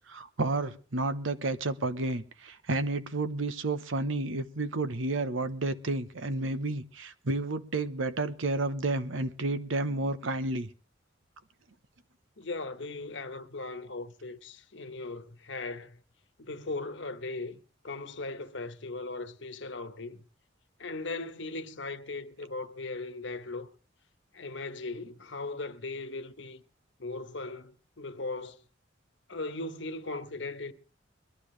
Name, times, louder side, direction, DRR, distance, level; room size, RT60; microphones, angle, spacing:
voice 1, 0.1-10.7, right 2 dB, 90° right, 1.0 m, -31 dB
voice 2, 12.4-16.0 16.4-20.2 20.8-23.7 24.3-26.6 27.0-28.6 29.3-30.7, left 3 dB, 65° left, 1.1 m, -38 dB
22.0 x 12.0 x 3.2 m
head